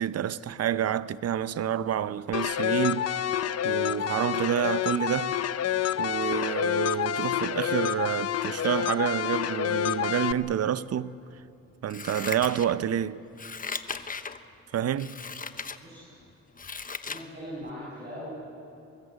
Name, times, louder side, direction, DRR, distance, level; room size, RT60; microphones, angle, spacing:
voice 1, 0.0-3.2 3.6-5.4 6.0-11.1 11.8-13.2 14.7-15.2, right 10 dB, 55° right, 0.8 m, -28 dB
sound 1, 2.3-10.3, left 10 dB, 55° left, 0.8 m, -28 dB
Scissors, 11.9-13.0 13.3-14.4 15.0-15.8 16.2-17.3 17.7-17.8, left 5 dB, 30° left, 1.0 m, -37 dB
voice 2, 15.8-16.2 17.0-18.3, equal, 35° right, 7.2 m, -40 dB
24.5 x 21.5 x 8.1 m
cardioid pair, 90°, 30 cm